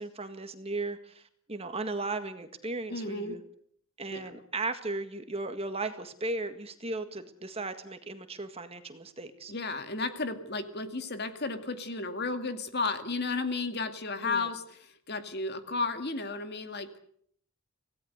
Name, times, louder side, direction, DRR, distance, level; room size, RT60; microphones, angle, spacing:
voice 1, 0.0-3.4 4.0-9.5 14.2-14.5, right 3 dB, 25° right, 9 dB, 1.8 m, -36 dB
voice 2, 2.9-3.4 4.1-4.3 9.5-17.0, left 3 dB, 50° left, 8 dB, 2.3 m, -33 dB
25.5 x 17.5 x 8.1 m, 0.65 s
head